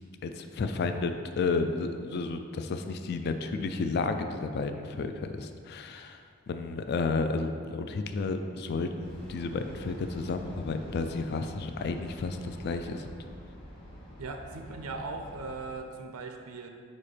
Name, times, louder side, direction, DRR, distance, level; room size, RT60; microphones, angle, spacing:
voice 1, 0.2-13.1, left 4 dB, 50° left, 7 dB, 0.3 m, -32 dB
sound 1, 9.0-15.8, equal, 25° left, 1.3 m, -46 dB
voice 2, 14.2-16.7, right 3 dB, 80° right, 4 dB, 0.5 m, -39 dB
5.0 x 4.2 x 5.0 m, 2.1 s
head